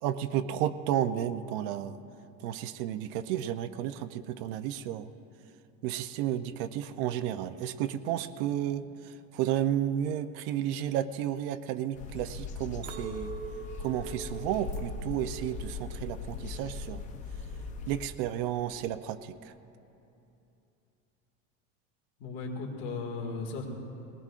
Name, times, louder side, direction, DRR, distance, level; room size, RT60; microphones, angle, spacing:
voice 1, 0.0-2.0 2.4-5.1 5.8-13.3 13.8-17.1 17.9-19.5, right 11 dB, 60° right, 11 dB, 0.5 m, -32 dB
sound 1, 11.9-18.1, left 4 dB, 25° left, 0.6 m, -40 dB
Chink clink, 12.8-17.2 17.6-18.1, right 5 dB, 35° right, 1.0 m, -44 dB
voice 2, 22.2-23.7, left 4 dB, 55° left, 2 dB, 2.1 m, -36 dB
21.0 x 19.0 x 2.5 m, 2.8 s
cardioid pair, 180°, 32 cm